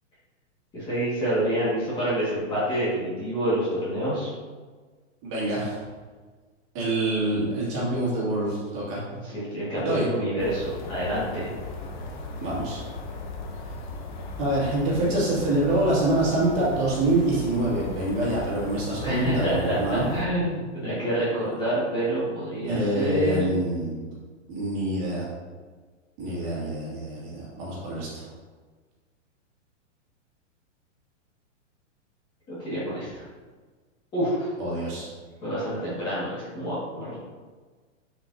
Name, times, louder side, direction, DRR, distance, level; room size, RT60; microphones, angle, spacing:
voice 1, 0.7-4.3 9.1-11.5 19.0-23.4 32.5-33.2 34.1-34.5 35.4-37.2, right 1 dB, 10° left, -10 dB, 1.8 m, -27 dB
voice 2, 5.2-5.8 6.7-9.0 9.8-10.0 12.4-12.8 14.4-20.1 22.6-24.0 24.5-25.3 26.2-28.3 34.6-35.1, right 1 dB, 25° right, -7 dB, 2.2 m, -26 dB
sound 1, 10.4-20.3, left 3 dB, 40° left, 0.9 m, -37 dB
10.0 x 5.1 x 2.7 m, 1.4 s
hypercardioid pair, 170°, 37 cm